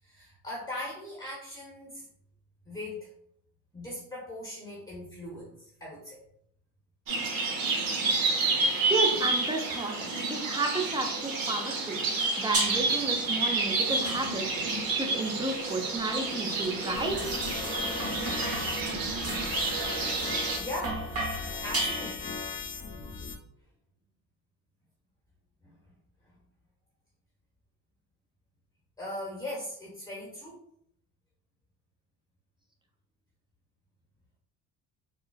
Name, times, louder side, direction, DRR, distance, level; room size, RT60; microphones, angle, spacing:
voice 1, 0.0-2.1 2.7-3.1 3.7-6.2 20.6-21.0 21.6-22.3 25.6-25.7 26.2-26.3 29.0-30.6, left 1 dB, 10° left, -3 dB, 1.0 m, -39 dB
sound 1, 7.1-20.6, right 3 dB, 55° right, 0.8 m, -30 dB
voice 2, 8.9-9.9 10.3-12.0 12.4-14.4 14.9-17.2, right 2 dB, 10° right, 2 dB, 0.6 m, -32 dB
sound 2, 12.5-13.1 14.0-14.7 15.7-22.5, right 2 dB, 35° right, 1.0 m, -36 dB
sound 3, 16.9-23.4, left 5 dB, 30° left, 0.6 m, -38 dB
3.8 x 2.0 x 2.3 m, 0.70 s
supercardioid pair, 70°, 41 cm